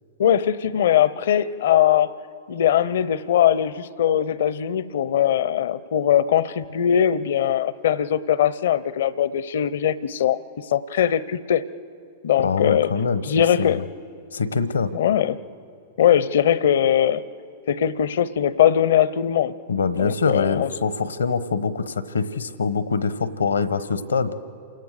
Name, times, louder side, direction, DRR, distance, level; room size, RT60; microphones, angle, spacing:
voice 1, 0.2-2.1 2.5-10.4 10.7-11.6 12.2-12.9 13.2-13.9 14.9-15.4 16.0-17.2 17.7-19.5 19.9-20.7, left 10 dB, 70° left, 18 dB, 0.7 m, -20 dB
voice 2, 12.4-13.2 13.6-13.8 14.3-14.9 19.7-24.3, left 5 dB, 85° left, 14 dB, 1.0 m, -24 dB
28.5 x 17.0 x 6.6 m, 2.4 s
hypercardioid pair, 105°, 0 cm